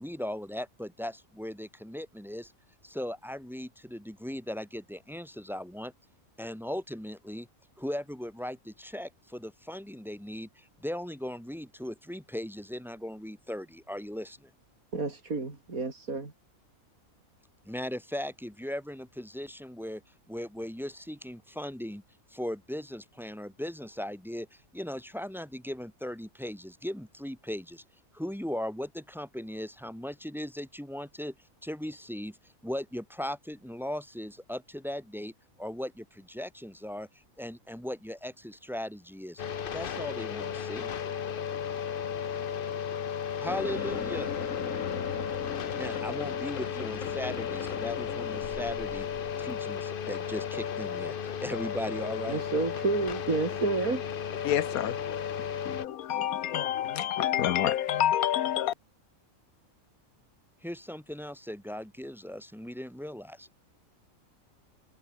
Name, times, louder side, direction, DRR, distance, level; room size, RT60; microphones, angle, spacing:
voice 1, 0.0-2.5 2.8-5.9 6.4-7.5 7.8-14.5 17.6-20.0 20.3-22.0 22.3-24.5 24.7-27.8 28.1-31.3 31.6-32.4 32.6-35.3 35.6-37.1 37.4-39.4 39.7-40.9 43.4-44.3 45.7-49.1 49.4-52.4 60.6-63.5, equal, ahead, 3.8 m, -38 dB
voice 2, 14.9-16.3 52.3-54.0, right 3 dB, 80° right, 4.1 m, -30 dB
sound 1, 39.4-55.9, left 7 dB, 45° left, 0.9 m, -34 dB
sound 2, 43.5-49.5, left 6 dB, 65° left, 2.0 m, -39 dB
voice 3, 54.4-55.2 55.7-58.7, left 11 dB, 85° left, 1.3 m, -28 dB
omnidirectional pair, 1.5 m